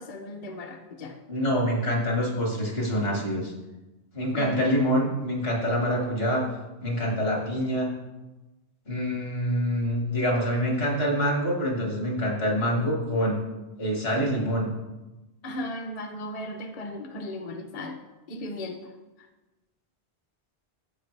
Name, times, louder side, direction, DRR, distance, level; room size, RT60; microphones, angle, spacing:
voice 1, 0.0-1.2 4.3-4.6 15.4-18.0 18.3-18.8, left 1 dB, 40° left, 5 dB, 0.7 m, -36 dB
voice 2, 1.3-3.5 4.1-6.5 6.8-7.9 8.9-13.4 13.8-14.7, equal, 65° left, -1 dB, 2.0 m, -26 dB
13.5 x 4.7 x 3.3 m, 1.1 s
omnidirectional pair, 1.1 m